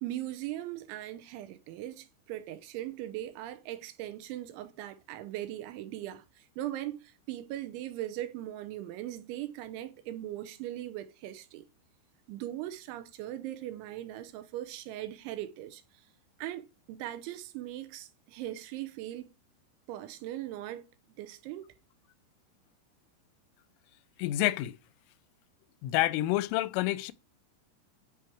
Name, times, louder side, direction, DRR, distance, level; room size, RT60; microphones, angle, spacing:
voice 1, 0.0-11.6 12.3-15.8 16.4-19.3 19.9-20.9 21.2-21.7, right 13 dB, 80° right, 3.1 m, -39 dB
voice 2, 24.2-24.8 25.8-27.1, left 16 dB, 90° left, 3.2 m, -28 dB
12.0 x 5.1 x 4.5 m
omnidirectional pair, 5.6 m